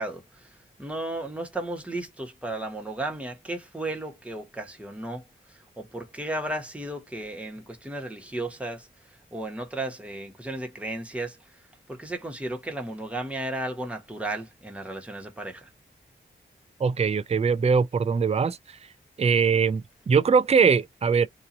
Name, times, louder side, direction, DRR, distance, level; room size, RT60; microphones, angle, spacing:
voice 1, 0.0-5.2 5.5-8.9 9.3-11.4 11.9-15.7, right 1 dB, 5° right, 1.3 m, -34 dB
voice 2, 16.8-18.8 19.2-21.3, right 5 dB, 30° right, 0.4 m, -22 dB
3.0 x 2.7 x 3.8 m
wide cardioid pair, 70°, 21 cm